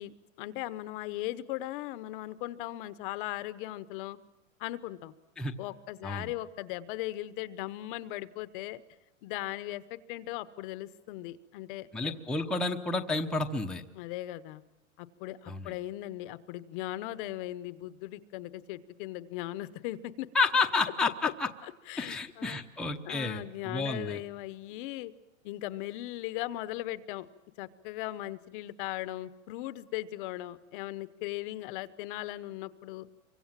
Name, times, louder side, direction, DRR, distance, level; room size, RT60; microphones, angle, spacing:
voice 1, 0.0-4.2 4.6-5.1 5.6-8.8 9.2-12.1 13.9-14.6 15.0-20.3 21.2-21.3 21.9-22.6 23.0-25.1 25.4-27.3 27.6-33.1, left 15 dB, 40° left, 14 dB, 0.9 m, -38 dB
voice 2, 11.9-13.8 15.5-15.7 20.3-21.5 22.0-24.2, left 3 dB, ahead, 2 dB, 0.8 m, -30 dB
27.5 x 24.0 x 7.5 m, 0.94 s
supercardioid pair, 145°, 40 cm